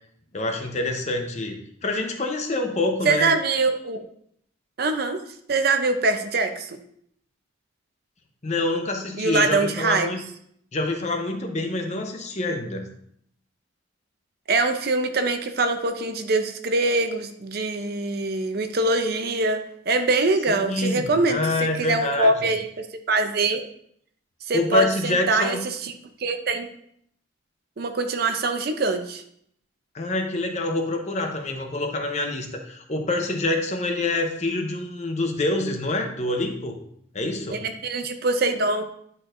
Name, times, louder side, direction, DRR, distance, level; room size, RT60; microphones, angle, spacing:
voice 1, 0.3-3.3 8.4-10.2 10.7-12.8 20.5-22.5 24.5-25.6 29.9-36.8 37.1-37.6, left 2 dB, 35° left, 4 dB, 0.7 m, -26 dB
voice 2, 3.1-4.0 4.8-5.2 5.5-6.8 9.2-10.1 14.5-21.4 21.8-23.6 24.5-25.9 26.2-26.7 27.8-29.2 37.5-38.9, right 3 dB, 55° right, 7 dB, 0.6 m, -23 dB
10.0 x 4.4 x 2.5 m, 0.68 s
head